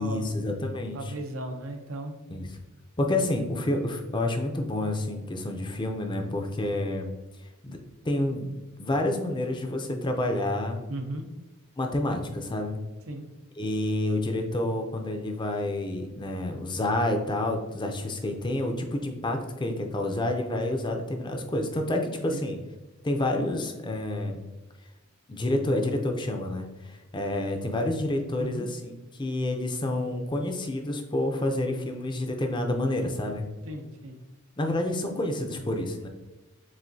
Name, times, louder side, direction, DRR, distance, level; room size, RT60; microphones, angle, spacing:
voice 1, 0.0-1.1 2.3-2.5 3.0-7.1 7.6-7.8 8.0-10.8 11.8-12.8 13.6-22.6 23.0-24.4 25.3-33.5 34.6-36.1, left 1 dB, 20° left, 4 dB, 0.5 m, -29 dB
voice 2, 0.9-2.1 10.9-11.3 13.1-13.3 22.3-22.4 28.4-28.7 33.6-34.2, right 1 dB, 70° right, 4 dB, 0.7 m, -36 dB
7.3 x 2.7 x 2.7 m, 1.1 s
head